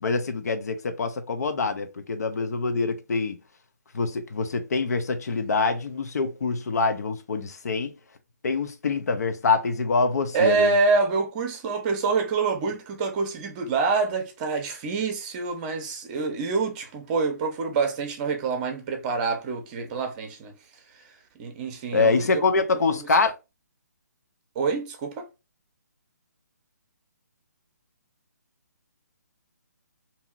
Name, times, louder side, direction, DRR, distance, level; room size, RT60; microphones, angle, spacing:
voice 1, 0.0-3.4 3.9-7.9 8.4-10.7 21.9-23.3, left 4 dB, 65° left, 0.6 m, -25 dB
voice 2, 10.3-20.5 21.4-22.4 22.9-23.1 24.6-25.3, right 4 dB, 30° right, 0.7 m, -26 dB
2.8 x 2.7 x 2.5 m
figure-of-eight pair, 145°, 10 cm